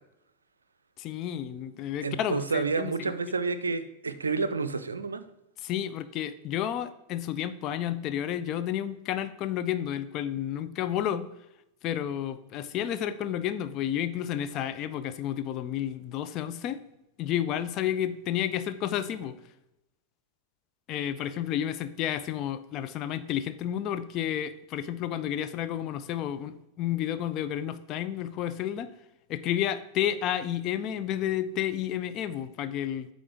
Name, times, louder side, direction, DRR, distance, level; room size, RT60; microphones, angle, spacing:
voice 1, 1.0-2.9 3.3-3.4 5.6-11.3 11.8-16.8 17.2-19.4 20.9-28.9 29.3-33.1, left 10 dB, 35° left, 10 dB, 0.4 m, -31 dB
voice 2, 2.0-5.2, right 4 dB, 75° right, 12 dB, 0.4 m, -29 dB
8.5 x 3.7 x 3.5 m, 0.88 s
figure-of-eight pair, 90°, 0 cm